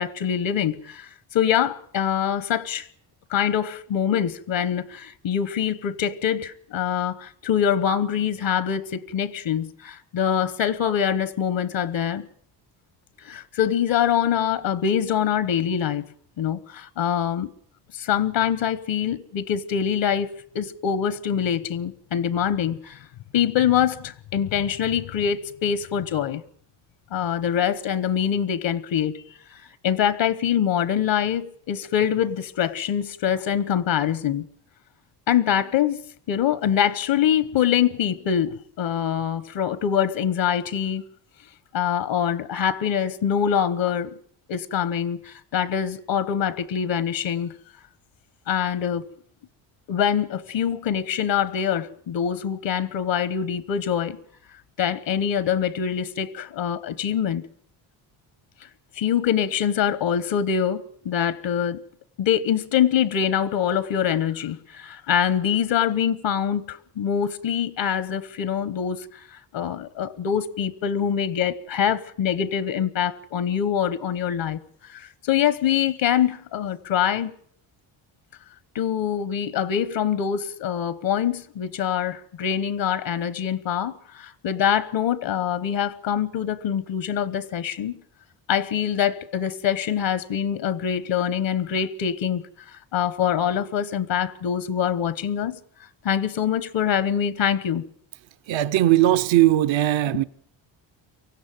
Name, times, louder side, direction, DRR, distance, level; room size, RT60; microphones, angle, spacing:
voice 1, 0.0-2.9 3.3-12.3 13.2-16.1 16.4-17.5 17.9-23.0 23.3-26.4 27.1-29.2 29.8-34.5 35.3-36.0 36.3-41.0 41.7-44.1 44.5-47.5 48.5-49.1 49.9-54.2 54.8-57.5 58.9-61.8 62.2-77.3 78.7-87.9 88.5-95.6 96.0-97.8, left 9 dB, 70° left, 1.2 m, -24 dB
voice 2, 98.5-100.2, right 14 dB, 70° right, 0.9 m, -19 dB
24.0 x 15.5 x 9.1 m
cardioid pair, 95°, 47 cm